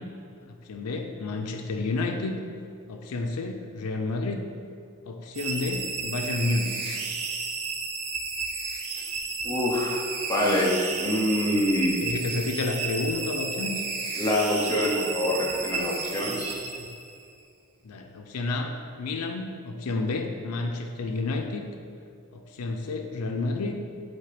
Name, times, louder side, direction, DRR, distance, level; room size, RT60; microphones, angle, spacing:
voice 1, 0.4-2.4 2.9-4.4 5.1-7.0 11.4-11.6 12.0-13.8 16.7-16.9 17.8-21.6 22.3-23.8, left 3 dB, 85° left, 4 dB, 0.5 m, -30 dB
sound 1, 5.3-17.2, right 4 dB, 75° right, 0.7 m, -32 dB
voice 2, 9.4-10.0 10.3-12.1 14.2-16.6, left 1 dB, 15° left, -3 dB, 0.8 m, -25 dB
7.9 x 2.8 x 5.0 m, 2.4 s
head